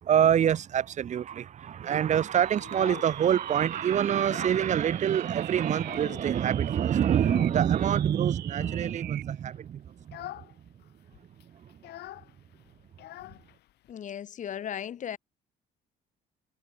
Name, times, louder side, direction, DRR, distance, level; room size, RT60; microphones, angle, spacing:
voice 1, 0.0-10.5 11.5-11.8, right 9 dB, 45° right, 1.0 m, -26 dB
sound 1, 2.4-9.4, right 15 dB, 75° right, 4.7 m, -45 dB
Child speech kid speaking, 2.5-3.5 3.9-4.7 5.0-5.1 5.4-6.5 7.1-7.6 8.5-9.0 9.4-9.6 10.0-10.5 10.8-10.9 11.1-13.9, left 15 dB, 75° left, 7.7 m, -45 dB
voice 2, 13.9-15.2, left 9 dB, 50° left, 1.7 m, -36 dB
cardioid pair, 110°, 17 cm